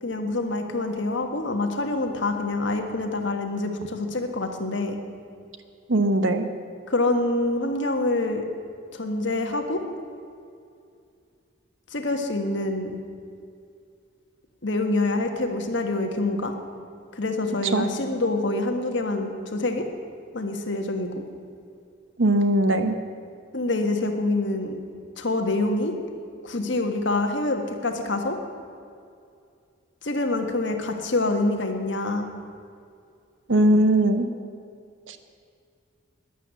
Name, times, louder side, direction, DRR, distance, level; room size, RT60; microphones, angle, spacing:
voice 1, 0.0-5.0 6.9-8.4 8.9-9.8 11.9-13.0 14.6-16.5 17.1-19.8 20.3-21.1 23.5-24.8 25.2-25.9 26.4-28.4 30.0-32.3, left 2 dB, 60° left, 4 dB, 1.4 m, -26 dB
voice 2, 5.9-6.5 17.6-17.9 22.2-23.0 33.5-34.3 35.1-35.2, right 1 dB, 65° right, 8 dB, 1.0 m, -20 dB
12.0 x 10.5 x 8.2 m, 2.4 s
head